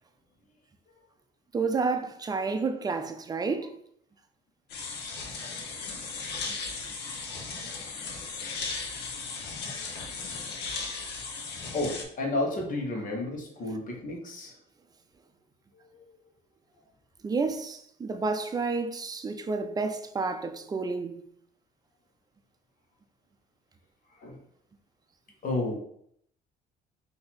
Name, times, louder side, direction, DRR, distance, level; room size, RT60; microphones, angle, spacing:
voice 1, 1.5-3.7 6.3-6.5 10.7-11.0 17.2-21.2, right 4 dB, 25° right, 0.5 m, -30 dB
sound 1, 4.7-12.0, left 4 dB, 80° left, 0.9 m, -36 dB
voice 2, 11.7-14.5 15.7-16.1 24.2-24.4 25.4-25.8, left 2 dB, 50° left, 1.4 m, -32 dB
4.1 x 2.9 x 4.2 m
cardioid pair, 110°, 17 cm